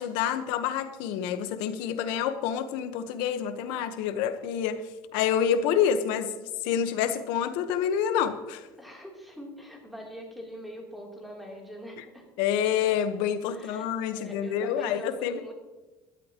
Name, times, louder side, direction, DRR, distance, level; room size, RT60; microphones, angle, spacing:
voice 1, 0.0-4.8 5.1-6.3 6.6-8.7 12.0-12.1 12.4-15.5, left 8 dB, 75° left, 10 dB, 1.1 m, -28 dB
voice 2, 8.8-12.3 13.5-13.9 14.1-15.5, equal, ahead, -2 dB, 3.2 m, -43 dB
17.5 x 12.5 x 3.0 m, 1.2 s
cardioid pair, 140°, 8 cm